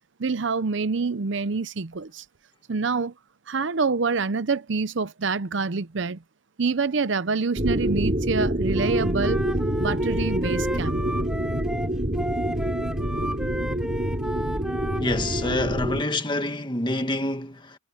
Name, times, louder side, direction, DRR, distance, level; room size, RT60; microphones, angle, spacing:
voice 1, 0.2-2.2 2.7-3.1 3.5-6.2 6.6-9.4 9.8-11.0, right 4 dB, 70° right, 0.7 m, -26 dB
sound 1, 7.6-16.0, right 1 dB, 40° right, 3.0 m, -26 dB
Wind instrument woodwind instrument, 8.7-15.6, equal, 5° right, 4.2 m, -33 dB
voice 2, 15.0-17.7, left 2 dB, 25° left, 1.7 m, -27 dB
head